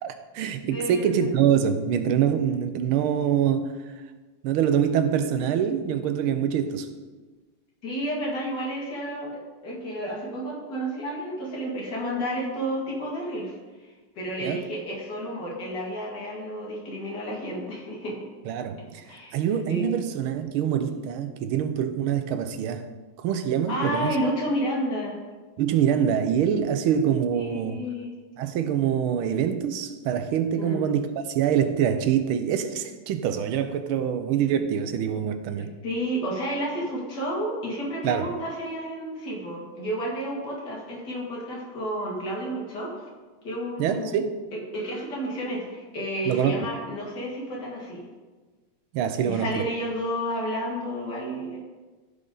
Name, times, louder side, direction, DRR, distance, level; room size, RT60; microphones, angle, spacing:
voice 1, 0.0-3.7 4.4-6.9 14.4-14.6 18.5-19.0 19.3-22.8 23.2-24.2 25.6-27.8 28.4-35.8 38.0-38.3 43.8-44.4 46.3-46.7 48.9-49.6, right 8 dB, 85° right, 9 dB, 1.6 m, -25 dB
voice 2, 0.6-1.3 7.8-13.5 13.8-18.3 19.0-19.4 19.7-19.9 23.7-25.2 27.3-28.1 30.5-30.8 35.8-42.9 43.4-44.2 44.7-48.0 49.1-51.6, equal, 55° left, -4 dB, 2.9 m, -31 dB
15.0 x 5.3 x 3.9 m, 1.3 s
omnidirectional pair, 2.3 m